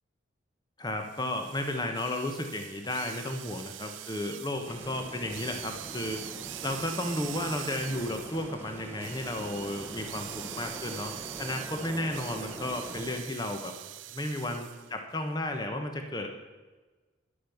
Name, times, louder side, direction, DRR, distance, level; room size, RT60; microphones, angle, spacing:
voice 1, 0.8-11.1 11.4-13.7 14.1-16.3, left 1 dB, 20° left, 4 dB, 1.1 m, -33 dB
sound 1, 1.0-14.9, right 14 dB, 80° right, 0.5 m, -43 dB
sound 2, 4.7-13.2, right 1 dB, 10° right, 0.9 m, -43 dB
11.0 x 8.4 x 7.0 m, 1.3 s
head